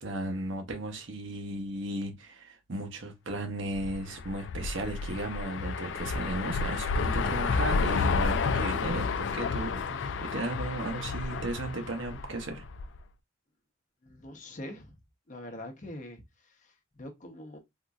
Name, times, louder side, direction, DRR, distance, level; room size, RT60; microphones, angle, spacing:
voice 1, 0.0-12.6, right 2 dB, 80° right, 0.8 m, -35 dB
sound 1, 3.7-13.0, left 4 dB, 70° left, 0.3 m, -31 dB
voice 2, 14.0-14.9 15.3-17.6, left 1 dB, 40° left, 0.7 m, -44 dB
3.6 x 2.6 x 2.3 m
head